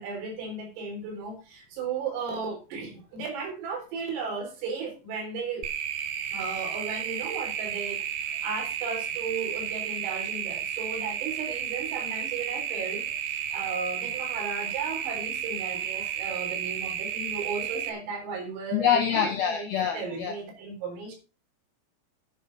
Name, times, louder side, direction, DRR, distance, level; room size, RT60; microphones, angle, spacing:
voice 1, 0.0-5.6 6.3-19.7 19.9-21.2, right 4 dB, 85° right, 2 dB, 6.5 m, -35 dB
sound 1, 5.6-17.9, right 9 dB, 70° right, 2.8 m, -32 dB
voice 2, 18.7-20.4, left 8 dB, 75° left, 5 dB, 2.2 m, -25 dB
11.0 x 8.1 x 5.3 m, 0.33 s
omnidirectional pair, 5.8 m